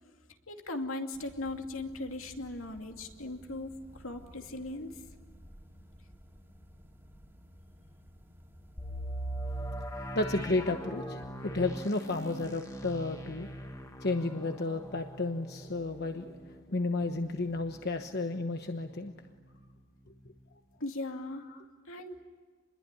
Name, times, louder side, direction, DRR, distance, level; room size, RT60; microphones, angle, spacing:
voice 1, 0.5-5.0 20.8-21.4 21.9-22.2, left 2 dB, 75° left, 4 dB, 2.6 m, -38 dB
sound 1, 1.1-10.7, equal, 10° right, 2.5 m, -56 dB
sound 2, 8.8-18.5 18.8-18.9 19.5-19.7, equal, 15° left, 1.9 m, -41 dB
voice 2, 9.9-13.5 14.0-19.1 21.5-21.6, left 2 dB, 50° left, 6 dB, 1.1 m, -32 dB
28.0 x 21.5 x 9.8 m, 1.4 s
head